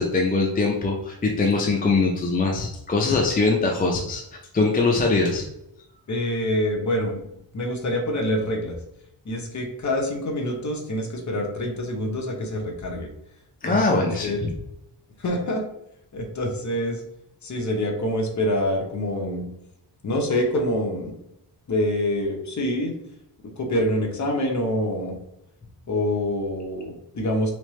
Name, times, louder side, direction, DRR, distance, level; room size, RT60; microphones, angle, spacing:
voice 1, 0.0-4.2 4.5-5.4 13.6-14.5, left 3 dB, 20° left, 0 dB, 0.4 m, -22 dB
voice 2, 6.1-7.2 7.5-8.8 9.2-13.1 13.6-14.5 15.2-15.6 16.1-17.0 17.4-19.5 20.0-21.2 21.7-22.9 23.6-25.1 25.9-27.5, left 1 dB, 40° left, 1 dB, 0.8 m, -26 dB
3.7 x 3.2 x 3.1 m, 0.83 s
wide cardioid pair, 140°, 47 cm